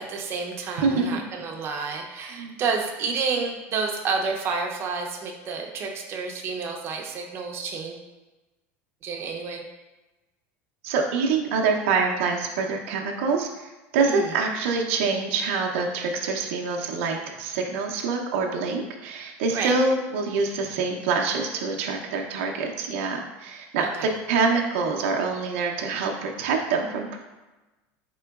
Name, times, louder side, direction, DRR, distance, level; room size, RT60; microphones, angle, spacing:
voice 1, 0.0-8.0 9.0-9.6 14.0-14.3 19.5-19.7 23.8-24.1, right 4 dB, 40° right, 1 dB, 0.6 m, -30 dB
voice 2, 0.8-1.2 2.3-2.6 10.8-13.7 13.9-27.2, right 4 dB, 85° right, 1 dB, 0.5 m, -25 dB
4.2 x 3.7 x 2.3 m, 1.1 s
supercardioid pair, 130°, 7 cm